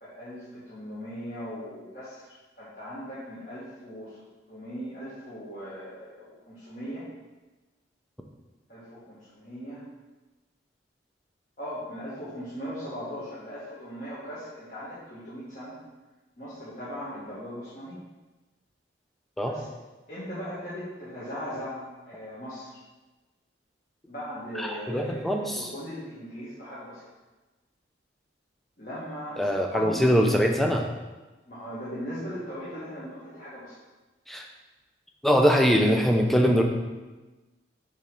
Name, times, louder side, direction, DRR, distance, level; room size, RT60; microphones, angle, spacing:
voice 1, 0.0-4.2 4.5-7.0 8.7-9.8 11.6-15.7 16.4-18.0 19.4-19.8 20.1-22.8 24.1-27.0 28.8-30.3 31.5-33.7, equal, 45° left, -12 dB, 1.7 m, -39 dB
voice 2, 24.6-25.7 29.4-30.9 34.3-34.4 35.2-36.6, equal, ahead, 2 dB, 0.5 m, -22 dB
6.8 x 3.2 x 5.3 m, 1.2 s
head